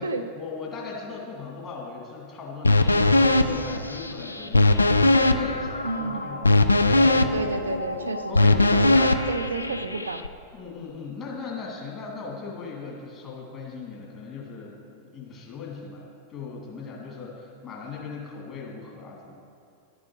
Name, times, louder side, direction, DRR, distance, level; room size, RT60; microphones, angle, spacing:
voice 1, 0.3-7.8 8.3-9.1 10.5-16.0 16.3-19.3, left 4 dB, 30° left, -3 dB, 2.3 m, -38 dB
sound 1, 2.6-10.3, left 2 dB, 80° left, 0.3 m, -21 dB
voice 2, 5.8-6.5 7.3-9.0 9.3-10.2, right 3 dB, 75° right, 7 dB, 0.5 m, -31 dB
11.5 x 6.2 x 4.8 m, 2.5 s
figure-of-eight pair, 90°, 0 cm